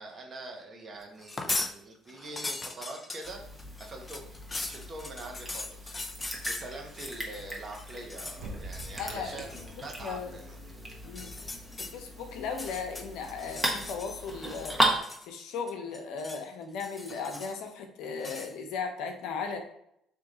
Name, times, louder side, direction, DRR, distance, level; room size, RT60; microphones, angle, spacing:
voice 1, 0.0-3.4 3.8-4.3 4.7-5.9 6.4-10.6, right 2 dB, 45° right, 1 dB, 1.1 m, -44 dB
sound 1, 1.2-1.7 2.1-7.4 7.7-8.4 8.7-9.0 9.4-9.7 11.0-11.9 12.5-14.2 14.5-15.4 15.7-16.4 16.8-17.7 18.2-18.5, left 2 dB, 25° left, 0.5 m, -39 dB
sound 2, 3.2-15.0, right 1 dB, 10° right, 1.1 m, -36 dB
sound 3, 8.3-11.2 11.6-11.7, right 2 dB, 80° right, 0.8 m, -46 dB
voice 2, 9.0-9.4 10.0-10.3 11.0-11.3 11.8-14.8 15.2-19.6, left 5 dB, 75° left, 4 dB, 0.7 m, -36 dB
3.6 x 2.9 x 3.8 m, 0.74 s
supercardioid pair, 70°, 0 cm